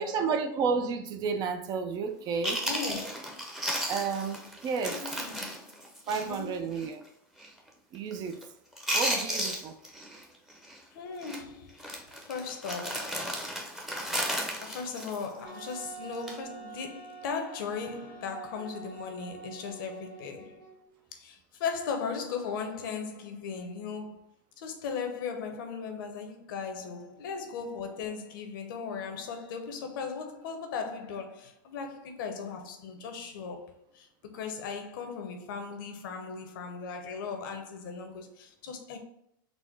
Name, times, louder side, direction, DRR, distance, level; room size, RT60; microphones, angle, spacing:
voice 1, 0.0-2.6 3.9-5.0 6.1-7.0 7.9-8.4 8.9-9.8, right 5 dB, 35° right, 0.4 m, -31 dB
Chewing mastication, 2.1-2.2 2.4-6.5 6.8-6.9 7.4-7.7 8.0-8.4 8.7-10.2 10.5-10.8 11.2-11.4 11.8-15.7 16.1-16.4, equal, 5° right, 0.7 m, -34 dB
voice 2, 2.6-3.1 4.9-5.7 6.1-6.6 10.9-13.5 14.6-20.7 21.1-24.2 24.6-34.1 34.3-39.0, left 5 dB, 70° left, 0.8 m, -37 dB
Wind instrument woodwind instrument, 15.4-20.9, right 5 dB, 85° right, 1.2 m, -46 dB
4.1 x 2.1 x 4.5 m
hypercardioid pair, 120°, 12 cm